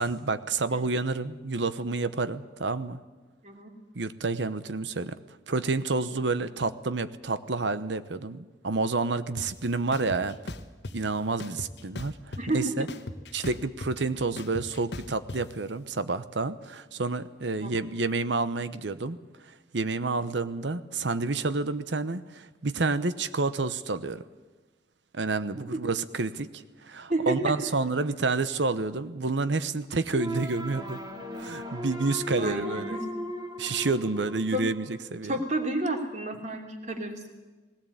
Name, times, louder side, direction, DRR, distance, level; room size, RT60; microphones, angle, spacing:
voice 1, 0.0-3.0 4.0-5.2 5.5-10.4 10.9-12.9 13.3-19.2 19.7-24.2 25.1-31.0 31.4-33.0 33.6-34.9 35.1-35.4, right 3 dB, 80° right, 13 dB, 1.0 m, -29 dB
sound 1, 9.4-9.5 9.9-10.9 11.4-12.6 12.9-15.4, left 2 dB, 70° left, 1.1 m, -38 dB
voice 2, 12.4-12.7 17.6-17.7 25.7-25.8 27.1-27.6 32.4-33.0 34.5-34.6 35.2-37.3, right 1 dB, 40° right, 3 dB, 3.1 m, -30 dB
sound 2, 30.1-35.2, equal, 25° right, 2.9 m, -37 dB
19.0 x 17.5 x 8.6 m, 1.3 s
head